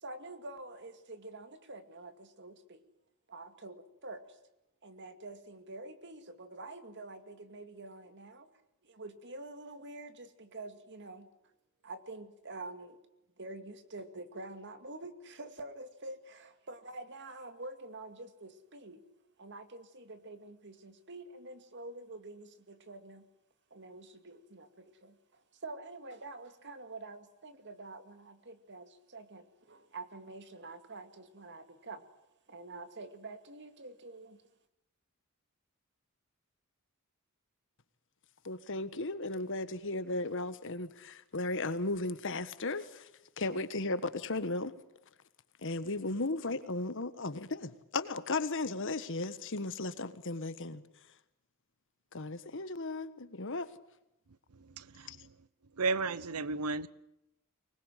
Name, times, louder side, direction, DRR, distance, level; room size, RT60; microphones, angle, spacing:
voice 1, 0.0-2.8 3.3-4.4 4.8-8.5 8.8-11.3 11.8-13.0 13.4-19.0 19.4-23.3 23.7-32.0 32.5-34.4, right 2 dB, 55° right, 2.3 m, -47 dB
voice 2, 38.4-43.1 43.4-44.7 45.6-50.8 52.1-53.7 55.1-55.2, left 2 dB, 60° left, 1.5 m, -35 dB
voice 3, 54.6-55.3 55.8-56.9, right 4 dB, 90° right, 0.9 m, -34 dB
24.5 x 20.5 x 9.3 m
head